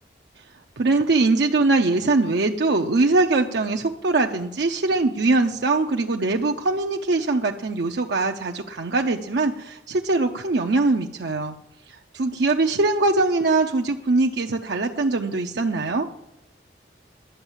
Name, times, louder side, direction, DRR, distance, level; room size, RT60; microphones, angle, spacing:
voice 1, 0.8-11.5 11.9-16.1, right 3 dB, 70° right, 3 dB, 0.6 m, -22 dB
11.0 x 6.9 x 7.3 m, 0.86 s
head